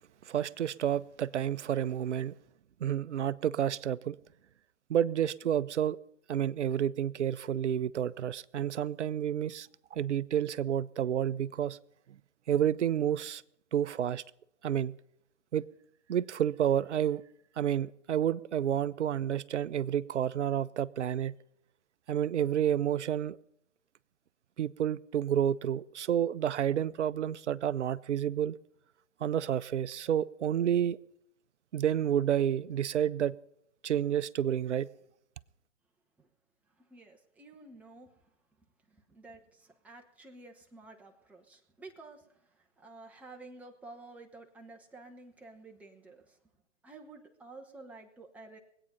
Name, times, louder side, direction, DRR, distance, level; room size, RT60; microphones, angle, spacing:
voice 1, 0.3-2.3 2.8-4.2 4.9-6.0 6.3-11.8 12.5-13.4 13.7-14.2 14.6-14.9 15.5-15.7 16.1-17.2 17.6-21.3 22.1-23.4 24.6-28.6 29.2-31.0 31.7-33.3 33.8-34.9, right 10 dB, 65° right, 0.6 m, -30 dB
voice 2, 36.8-38.1 38.9-46.4 46.8-48.6, right 2 dB, 5° right, 0.9 m, -51 dB
22.0 x 8.8 x 5.6 m
figure-of-eight pair, 130°, 38 cm